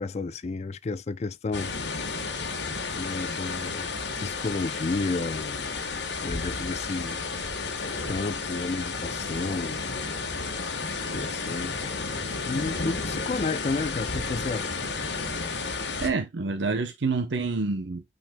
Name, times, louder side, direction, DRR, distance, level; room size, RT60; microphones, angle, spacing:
voice 1, 0.0-1.7 2.9-3.9 4.2-5.7 6.2-7.3 8.1-9.9 10.6-14.7, left 3 dB, 35° left, 0.4 m, -32 dB
sound 1, 1.5-16.1, left 4 dB, 65° left, 1.3 m, -32 dB
voice 2, 15.7-18.0, right 4 dB, 75° right, 0.8 m, -28 dB
8.8 x 5.1 x 2.2 m
head